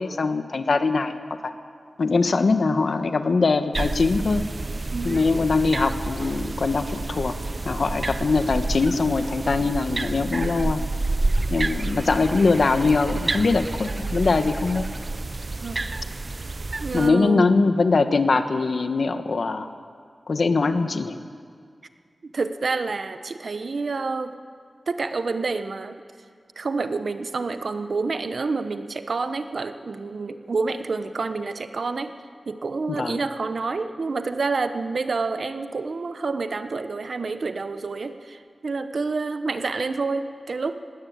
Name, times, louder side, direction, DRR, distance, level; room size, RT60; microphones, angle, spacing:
voice 1, 0.0-1.5 2.0-4.4 5.0-7.4 7.6-10.8 11.5-14.9 16.9-19.7 20.3-21.2 32.9-33.2, left 3 dB, 60° left, 9 dB, 1.2 m, -22 dB
sound 1, 3.7-17.1, right 2 dB, 35° right, 0.6 m, -29 dB
voice 2, 16.8-17.6 22.2-24.3 24.9-26.0 26.6-32.1 32.5-40.7, right 4 dB, 60° right, 10 dB, 1.0 m, -28 dB
20.0 x 17.5 x 8.8 m, 2.1 s
wide cardioid pair, 120°, 0 cm